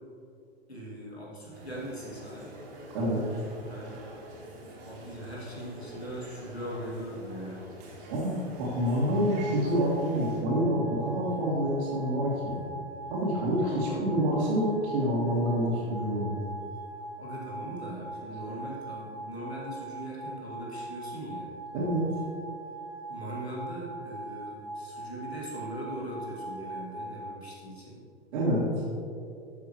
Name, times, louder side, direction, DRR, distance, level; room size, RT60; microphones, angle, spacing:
voice 1, 0.7-2.5 3.7-3.9 4.8-7.6 13.6-14.2 17.2-21.5 23.1-28.0, right 1 dB, 80° left, -5 dB, 2.3 m, -40 dB
sound 1, 1.5-10.4, right 1 dB, 35° right, 2.2 m, -46 dB
voice 2, 8.1-12.6 13.1-16.4 21.7-22.0 28.3-28.7, equal, 50° right, -8 dB, 2.2 m, -27 dB
sound 2, 8.8-27.3, right 2 dB, 15° left, 2.1 m, -41 dB
12.5 x 6.8 x 3.1 m, 2.5 s
figure-of-eight pair, 100°, 31 cm